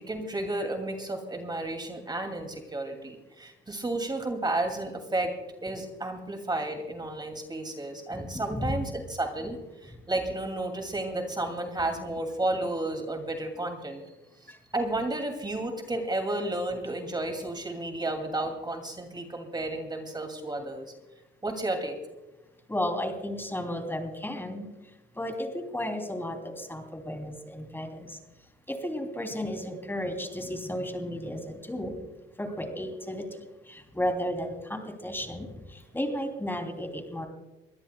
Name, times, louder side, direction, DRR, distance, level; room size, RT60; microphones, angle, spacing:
voice 1, 0.1-8.9 9.2-14.0 14.7-20.9 21.4-22.0, right 2 dB, 20° right, 5 dB, 2.4 m, -32 dB
voice 2, 8.1-8.9 14.5-14.6 22.7-24.7 25.2-28.2 28.7-32.0 32.4-33.2 33.7-37.3, left 1 dB, 10° left, 5 dB, 3.0 m, -33 dB
23.5 x 17.0 x 2.3 m, 1.1 s
cardioid pair, 90°, 20 cm